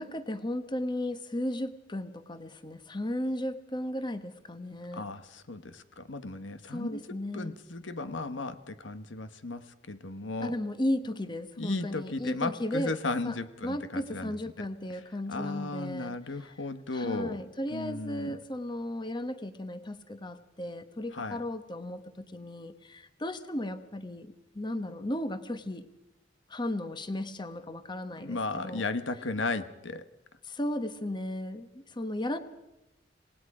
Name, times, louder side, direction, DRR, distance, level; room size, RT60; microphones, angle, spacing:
voice 1, 0.0-5.0 6.7-7.6 10.4-12.9 13.2-13.4 13.6-16.5 16.9-25.9 26.5-28.8 30.4-32.4, left 1 dB, 25° left, 10 dB, 1.1 m, -35 dB
voice 2, 4.9-7.0 7.3-10.5 11.6-14.3 15.3-17.4 17.7-18.4 21.1-21.4 28.2-30.0, left 3 dB, 90° left, 10 dB, 1.3 m, -35 dB
27.5 x 19.0 x 5.0 m, 0.94 s
head